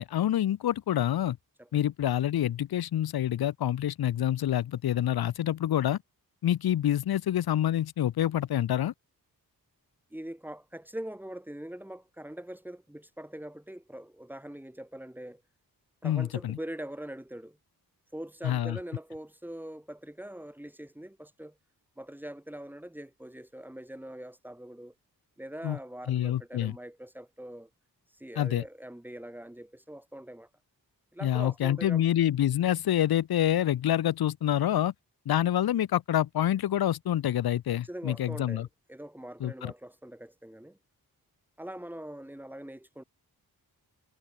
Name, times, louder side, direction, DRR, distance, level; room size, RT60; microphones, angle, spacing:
voice 1, 0.0-1.4 1.7-6.0 6.4-8.9 16.0-16.6 18.4-18.8 25.6-25.8 26.1-26.7 28.4-28.6 31.2-34.9 35.3-38.7 39.4-39.7, left 11 dB, 80° left, 0.7 m, -27 dB
voice 2, 1.6-1.9 10.1-15.4 16.0-17.6 18.1-21.6 22.0-24.9 25.4-27.7 28.1-30.5 31.1-32.0 37.8-40.8 41.6-43.0, right 1 dB, 5° right, 3.5 m, -43 dB
wide cardioid pair, 125°, 37 cm